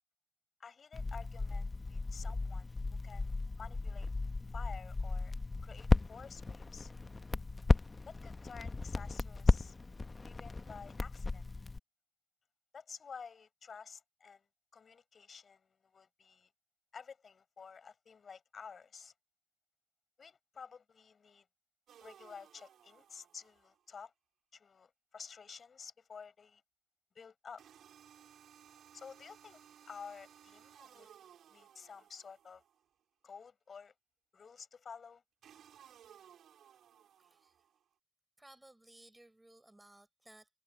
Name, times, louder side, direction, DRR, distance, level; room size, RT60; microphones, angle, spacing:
voice 1, 0.6-2.7 3.0-4.1 4.5-5.3 5.6-6.9 8.1-9.8 10.2-11.5 12.7-14.5 14.7-16.5 16.9-19.1 20.2-21.5 22.0-24.1 24.5-26.6 27.1-27.6 28.9-31.1 31.5-32.6 33.2-33.9 34.3-35.2, left 6 dB, 45° left, 7.5 m, -52 dB
Crackle, 0.9-11.8, left 3 dB, 25° left, 0.8 m, -34 dB
sound 1, 21.9-23.8 27.6-32.8 35.4-37.8, right 9 dB, 75° right, 3.7 m, -60 dB
voice 2, 37.2-37.5 38.4-40.5, right 1 dB, 10° right, 5.8 m, -59 dB
cardioid pair, 95°, 0 cm